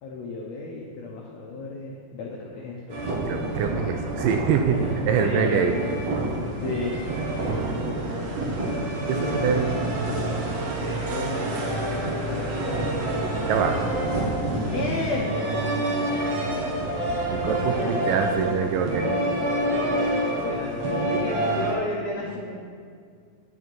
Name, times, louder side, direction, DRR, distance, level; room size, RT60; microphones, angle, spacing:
voice 1, 0.0-3.0 4.6-4.9 5.2-5.9 6.6-7.0 9.1-9.7 10.1-13.5 14.7-15.3 19.6-22.6, left 3 dB, 85° left, -1 dB, 1.5 m, -33 dB
sound 1, 2.9-21.7, right 1 dB, 60° right, 2.0 m, -27 dB
voice 2, 3.3-4.8 5.1-5.8 9.1-9.7 13.5-13.8 17.3-19.1, right 7 dB, 80° right, 5 dB, 2.0 m, -24 dB
10.0 x 6.3 x 4.6 m, 2.2 s
omnidirectional pair, 4.2 m